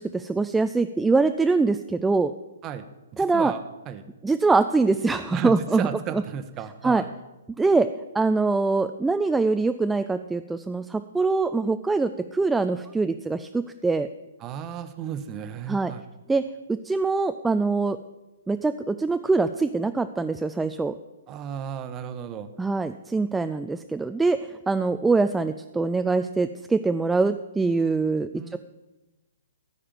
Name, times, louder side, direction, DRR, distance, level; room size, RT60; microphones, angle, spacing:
voice 1, 0.0-2.3 3.2-3.5 4.2-5.9 6.8-7.0 7.6-7.9 8.1-14.1 15.7-15.9 16.3-16.4 16.7-18.0 18.5-21.0 22.6-24.4 24.7-28.6, right 3 dB, 5° right, 9 dB, 0.3 m, -23 dB
voice 2, 3.1-3.6 3.9-4.0 5.3-7.1 14.4-16.0 21.3-22.5 28.3-28.6, right 8 dB, 25° right, 9 dB, 0.9 m, -34 dB
14.5 x 4.9 x 8.8 m, 1.1 s
figure-of-eight pair, 120°, 0 cm